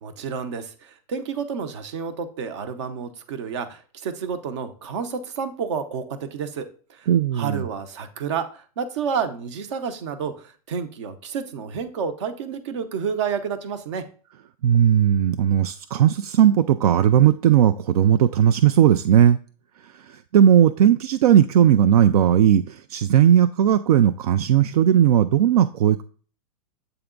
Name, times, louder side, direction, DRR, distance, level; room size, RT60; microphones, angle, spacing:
voice 1, 0.0-7.1 7.3-14.0, right 6 dB, 50° right, 9 dB, 0.8 m, -30 dB
voice 2, 7.1-7.7 14.6-19.4 20.3-26.0, right 10 dB, 75° right, 11 dB, 0.4 m, -17 dB
7.9 x 3.5 x 3.7 m, 0.42 s
supercardioid pair, 175°, 19 cm